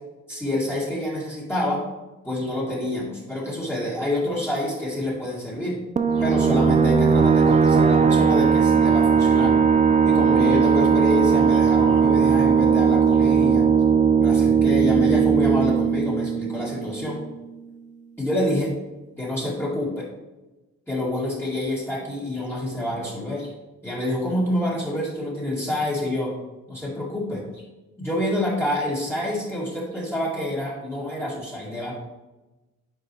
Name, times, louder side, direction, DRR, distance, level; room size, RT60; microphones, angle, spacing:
voice 1, 0.3-1.8 2.2-5.8 6.1-9.6 10.0-13.7 14.2-17.2 18.2-18.7 19.2-20.1 20.9-23.5 23.8-26.3 26.7-27.6 28.0-31.9, left 1 dB, 5° left, -8 dB, 2.2 m, -27 dB
sound 1, 6.0-17.2, right 6 dB, 25° right, 0.4 m, -18 dB
8.8 x 4.6 x 3.0 m, 1.1 s
cardioid pair, 90°, 30 cm